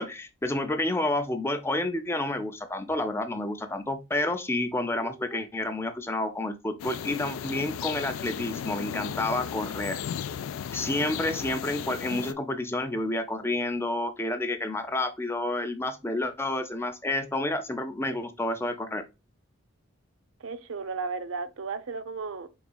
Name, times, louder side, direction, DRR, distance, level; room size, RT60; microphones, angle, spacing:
voice 1, 0.0-10.0 10.7-19.0, left 2 dB, 10° left, 0.4 m, -30 dB
sound 1, 6.8-12.3, left 8 dB, 85° left, 0.3 m, -35 dB
voice 2, 20.4-22.5, right 4 dB, 80° right, 0.6 m, -34 dB
4.5 x 3.9 x 2.2 m
head